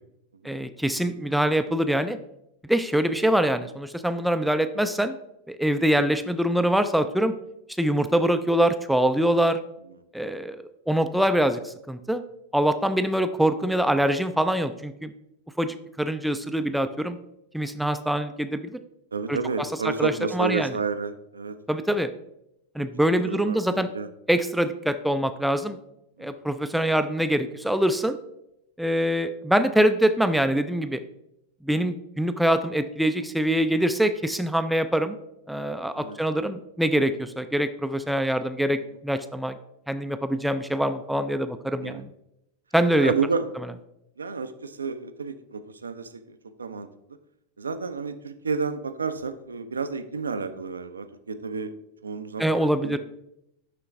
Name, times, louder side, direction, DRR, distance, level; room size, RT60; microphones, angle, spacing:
voice 1, 0.4-2.2 2.7-5.2 5.5-7.3 7.8-9.6 10.1-12.2 12.5-15.1 15.6-17.2 17.5-18.8 19.3-19.7 20.0-20.7 21.7-22.1 22.8-23.9 24.3-25.8 26.2-28.2 28.8-31.0 31.6-35.2 35.5-39.6 39.9-42.1 42.7-43.1 52.4-53.0, right 1 dB, ahead, 10 dB, 0.4 m, -24 dB
voice 2, 19.1-21.6 22.8-22.9 23.2-24.1 26.2-26.4 33.6-33.7 36.0-36.2 41.8-42.0 43.0-43.6 44.2-46.9 47.6-51.7 52.0-53.0, right 4 dB, 75° right, 10 dB, 0.5 m, -31 dB
11.0 x 3.8 x 3.4 m, 0.82 s
figure-of-eight pair, 90°, 0 cm